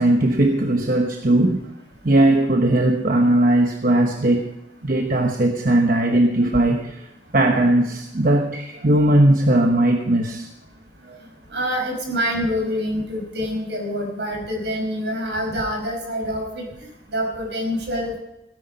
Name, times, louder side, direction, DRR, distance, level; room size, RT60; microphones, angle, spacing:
voice 1, 0.0-1.6 2.0-4.5 4.8-7.1 7.3-10.5 11.0-11.2, right 1 dB, 50° right, 3 dB, 1.0 m, -18 dB
voice 2, 11.5-16.6 17.1-18.2, equal, 75° right, 1 dB, 5.0 m, -26 dB
16.5 x 9.9 x 5.2 m, 0.91 s
head